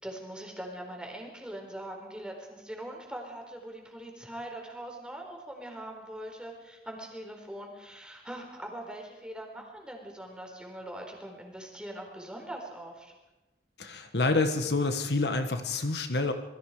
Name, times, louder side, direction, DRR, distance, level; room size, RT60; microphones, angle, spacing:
voice 1, 0.0-13.1, right 1 dB, 5° right, 1 dB, 4.4 m, -42 dB
voice 2, 13.8-16.3, left 3 dB, 70° left, 7 dB, 1.6 m, -28 dB
27.5 x 22.0 x 5.0 m, 1.1 s
head